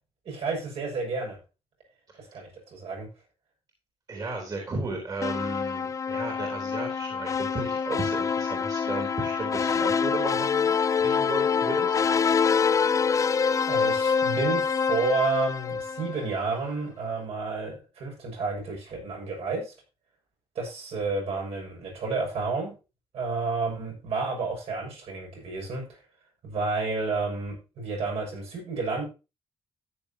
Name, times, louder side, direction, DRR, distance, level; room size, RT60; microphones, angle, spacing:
voice 1, 0.3-1.4 2.2-3.1 13.7-19.7 20.6-22.7 23.1-26.0 26.4-29.0, right 4 dB, 70° right, 0 dB, 7.0 m, -31 dB
voice 2, 4.1-12.0, right 3 dB, 35° right, 2 dB, 3.6 m, -35 dB
sound 1, 5.2-16.5, left 6 dB, 30° left, 0.5 m, -26 dB
13.5 x 9.5 x 2.9 m, 0.29 s
cardioid pair, 130°, 11 cm